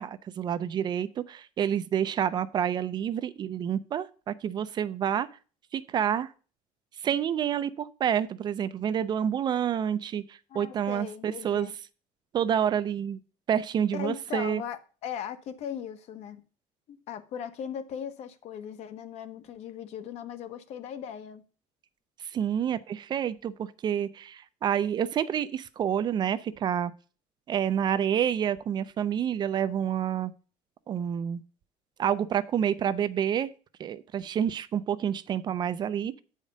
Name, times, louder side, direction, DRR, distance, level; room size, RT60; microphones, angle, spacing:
voice 1, 0.0-5.3 5.7-6.3 7.0-11.7 12.3-13.2 13.5-14.6 22.2-26.9 27.5-30.3 30.9-31.4 32.0-33.5 33.8-36.2, right 9 dB, 35° right, 0.4 m, -28 dB
voice 2, 10.5-11.7 13.9-16.4 16.9-21.4, left 8 dB, 60° left, 1.0 m, -38 dB
8.3 x 5.0 x 5.3 m
cardioid pair, 165°, 13 cm